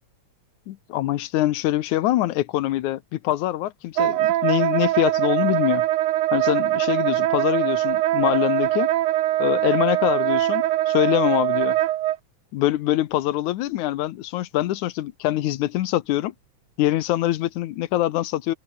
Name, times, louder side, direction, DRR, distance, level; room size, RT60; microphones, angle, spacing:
voice 1, 0.7-5.8 6.3-8.9 9.4-11.8 12.5-16.3 16.8-18.5, left 14 dB, 85° left, 2.4 m, -24 dB
Wind instrument woodwind instrument, 4.0-12.2, right 14 dB, 90° right, 2.5 m, -22 dB
omnidirectional pair, 3.4 m